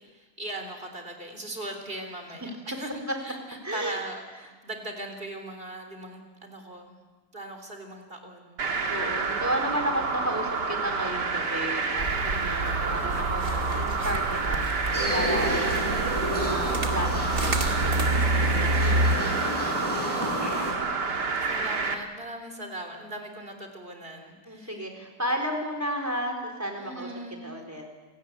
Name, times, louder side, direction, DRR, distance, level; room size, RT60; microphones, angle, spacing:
voice 1, 0.0-7.0 7.3-8.9 12.6-13.6 15.5-16.1 21.4-24.9 26.8-27.6, right 1 dB, 30° right, 5 dB, 3.8 m, -40 dB
voice 2, 3.6-4.0 8.7-20.3 24.5-27.1 27.4-27.8, equal, 10° right, 4 dB, 4.1 m, -33 dB
sound 1, 8.6-21.9, right 4 dB, 75° right, 2.5 m, -29 dB
sound 2, 12.0-19.2, right 2 dB, 55° right, 2.9 m, -29 dB
sound 3, 14.9-20.7, equal, 15° left, 6.8 m, -31 dB
28.0 x 18.0 x 8.3 m, 1.3 s
omnidirectional pair, 1.8 m